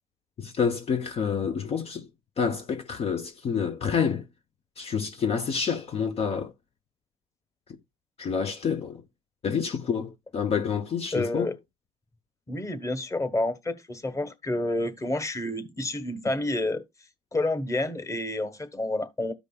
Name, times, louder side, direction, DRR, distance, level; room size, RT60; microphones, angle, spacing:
voice 1, 0.4-2.1 2.4-4.2 4.8-6.5 8.2-9.0 9.4-11.5, left 6 dB, 50° left, 0.8 m, -28 dB
voice 2, 11.1-11.5 12.5-16.8 17.3-19.3, left 2 dB, 25° left, 1.3 m, -29 dB
13.5 x 5.2 x 2.3 m
cardioid pair, 85°, 13 cm